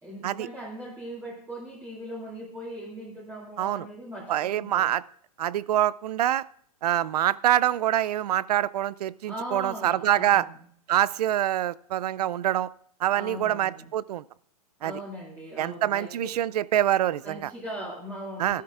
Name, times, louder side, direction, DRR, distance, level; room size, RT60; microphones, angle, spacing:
voice 1, 0.0-4.9 9.3-10.5 13.1-13.9 14.8-16.3 17.2-18.6, equal, 10° right, -6 dB, 2.6 m, -39 dB
voice 2, 4.3-5.0 5.4-6.4 6.8-10.5 10.9-12.7 13.0-14.2 14.8-14.9 15.6-17.5 18.4-18.6, right 12 dB, 80° right, 21 dB, 0.4 m, -25 dB
16.0 x 12.5 x 2.4 m, 0.63 s
hypercardioid pair, 145°, 20 cm